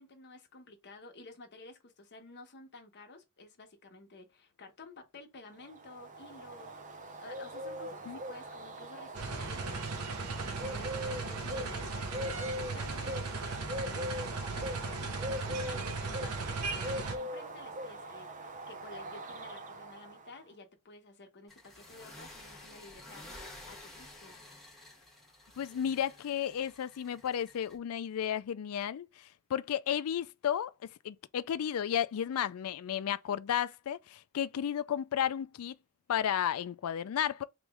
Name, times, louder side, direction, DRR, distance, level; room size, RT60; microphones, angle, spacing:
voice 1, 0.0-24.4, left 2 dB, 50° left, 1.1 m, -53 dB
Bird, 5.7-20.4, equal, 35° right, 0.6 m, -41 dB
sound 1, 9.1-17.1, right 3 dB, 85° right, 0.8 m, -37 dB
sound 2, 21.5-27.8, left 1 dB, ahead, 1.3 m, -52 dB
voice 2, 25.6-35.8 36.1-37.4, left 9 dB, 70° left, 0.4 m, -33 dB
3.1 x 3.0 x 3.5 m
head